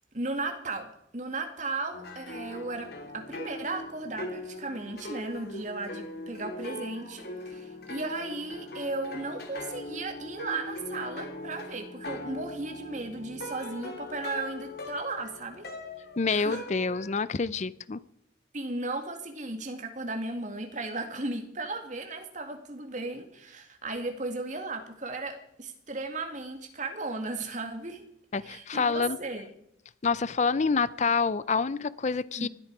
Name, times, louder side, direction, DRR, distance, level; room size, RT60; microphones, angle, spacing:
voice 1, 0.1-15.7 16.3-16.6 18.5-28.0 28.4-29.5 32.4-32.5, right 2 dB, 45° right, 5 dB, 2.3 m, -35 dB
sound 1, 1.9-17.1, left 1 dB, 60° left, 2.5 m, -41 dB
voice 2, 16.2-18.0 28.3-29.2 30.0-32.5, left 4 dB, 40° left, 17 dB, 0.5 m, -27 dB
20.0 x 13.0 x 4.8 m, 0.77 s
head